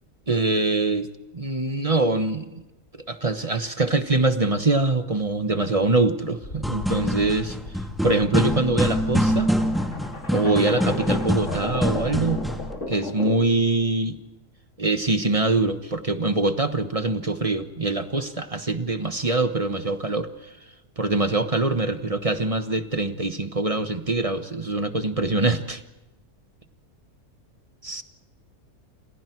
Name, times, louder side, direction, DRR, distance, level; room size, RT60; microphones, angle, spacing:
voice 1, 0.3-1.1 1.3-2.6 3.1-7.6 8.0-9.5 10.3-12.5 12.9-14.2 14.8-20.3 21.0-25.8 27.8-28.0, right 2 dB, 25° right, 8 dB, 1.1 m, -24 dB
sound 1, 6.4-13.6, left 3 dB, 50° left, 2.9 m, -35 dB
sound 2, 6.5-12.7, equal, ahead, 2.2 m, -25 dB
29.5 x 27.0 x 4.7 m, 0.98 s
omnidirectional pair, 1.6 m